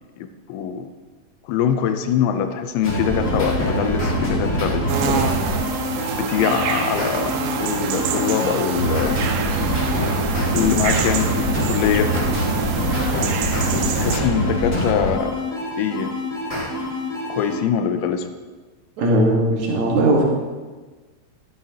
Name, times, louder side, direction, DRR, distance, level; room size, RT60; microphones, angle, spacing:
voice 1, 0.2-0.9 1.4-5.3 6.1-9.2 10.5-12.1 13.8-15.5 15.8-16.1 17.3-18.3, left 8 dB, 85° left, 7 dB, 2.6 m, -23 dB
sound 1, 2.8-17.6, equal, 40° left, 1.0 m, -24 dB
sound 2, 4.9-14.2, right 7 dB, 90° right, 3.3 m, -26 dB
voice 2, 19.0-20.2, right 1 dB, 65° right, -2 dB, 1.9 m, -18 dB
13.0 x 12.5 x 2.9 m, 1.3 s
omnidirectional pair, 5.9 m